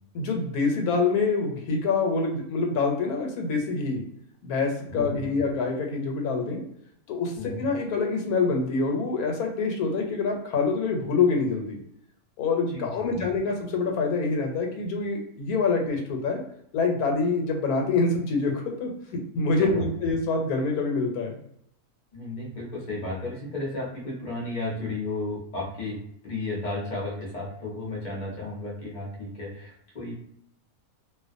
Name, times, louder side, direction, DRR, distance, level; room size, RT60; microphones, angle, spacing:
voice 1, 0.1-4.0 4.4-6.6 7.1-11.8 12.4-16.4 16.7-18.9 19.3-21.4, left 4 dB, 85° left, 2 dB, 1.1 m, -26 dB
voice 2, 4.9-5.4 7.3-7.7 12.7-13.2 19.6-19.9 22.1-30.1, left 2 dB, 35° left, -3 dB, 0.7 m, -33 dB
2.5 x 2.1 x 2.5 m, 0.70 s
omnidirectional pair, 1.5 m